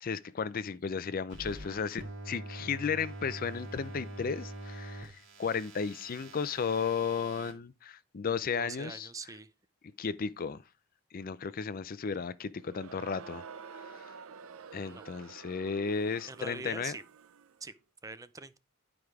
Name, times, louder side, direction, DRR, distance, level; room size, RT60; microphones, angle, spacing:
voice 1, 0.0-9.1 10.0-10.6 11.1-13.4 13.9-14.0 14.7-17.0, left 5 dB, 45° left, 0.5 m, -34 dB
sound 1, 1.3-7.5, right 1 dB, 60° right, 2.5 m, -45 dB
voice 2, 8.6-9.5 14.8-15.1 15.3-15.4 16.3-17.0 17.6-17.7 18.0-18.6, right 3 dB, 15° right, 0.5 m, -43 dB
Crowd, 12.6-17.6, right 6 dB, 85° right, 0.6 m, -49 dB
11.0 x 4.9 x 4.6 m
head